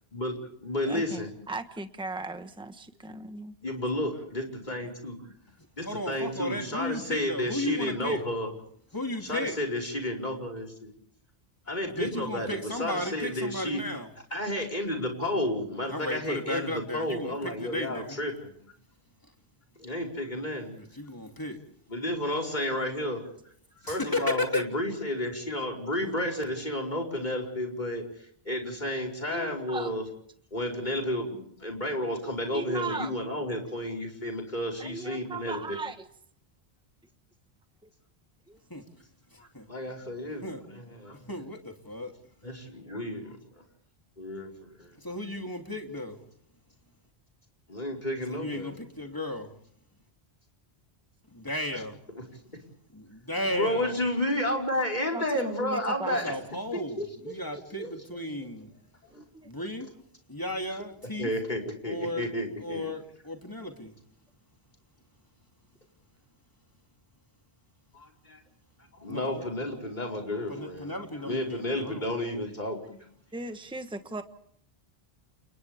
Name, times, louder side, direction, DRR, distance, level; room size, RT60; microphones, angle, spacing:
voice 1, 0.1-1.3 3.1-3.2 3.6-5.3 5.8-8.5 9.3-10.9 11.7-13.8 14.3-18.5 19.8-20.7 21.9-23.2 23.8-28.0 28.5-30.1 30.5-35.8 39.4-41.2 42.4-43.4 44.2-44.9 47.7-48.8 53.4-56.3 56.7-57.9 59.1-59.2 61.2-62.9 67.9-68.4 68.9-70.9 71.2-73.0, left 1 dB, 45° left, 0 dB, 5.1 m, -32 dB
voice 2, 0.8-3.5 19.8-19.9 29.3-29.9 32.5-33.1 34.8-36.1 38.5-38.6 55.1-56.3 59.1-59.5 73.3-74.2, right 3 dB, 5° right, 8 dB, 1.2 m, -38 dB
voice 3, 5.8-8.2 8.9-9.6 11.8-14.1 15.9-18.2 19.2-19.3 20.7-21.6 23.8-24.6 38.7-38.8 39.3-39.7 40.4-40.6 41.3-42.1 44.9-46.2 48.3-49.5 51.3-52.0 52.9-54.0 56.0-58.7 59.4-59.9 60.3-61.3 61.8-62.3 62.6-64.0 69.0-69.5 70.5-72.1, left 1 dB, 20° left, 2 dB, 3.0 m, -34 dB
30.0 x 29.0 x 3.5 m, 0.63 s
omnidirectional pair, 1.1 m